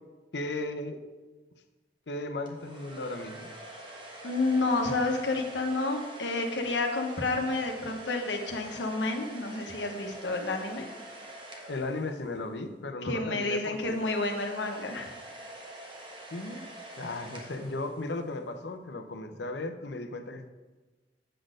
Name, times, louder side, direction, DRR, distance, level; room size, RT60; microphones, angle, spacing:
voice 1, 0.3-1.0 2.1-3.5 11.7-14.2 16.3-16.6 17.0-20.5, left 2 dB, 70° left, 8 dB, 0.7 m, -36 dB
sound 1, 2.5-12.6 13.6-18.4, right 1 dB, 30° right, 1.2 m, -46 dB
voice 2, 4.2-10.9 13.0-15.1, left 2 dB, 85° left, 3 dB, 1.1 m, -30 dB
7.7 x 4.1 x 6.4 m, 1.2 s
head